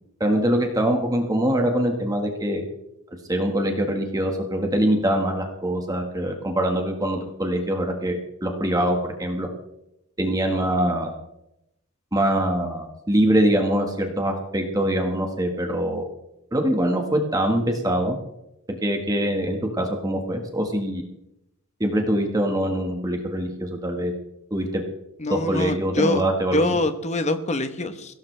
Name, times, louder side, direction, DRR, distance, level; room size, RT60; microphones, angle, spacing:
voice 1, 0.2-2.6 3.3-9.5 10.2-11.1 12.1-16.1 16.5-18.2 18.8-21.0 21.8-24.1 24.5-24.8 25.3-26.6, right 1 dB, 15° right, 3 dB, 1.6 m, -23 dB
voice 2, 25.2-26.2 26.5-28.1, left 2 dB, 30° left, 9 dB, 1.1 m, -24 dB
21.5 x 17.0 x 3.4 m, 0.85 s
head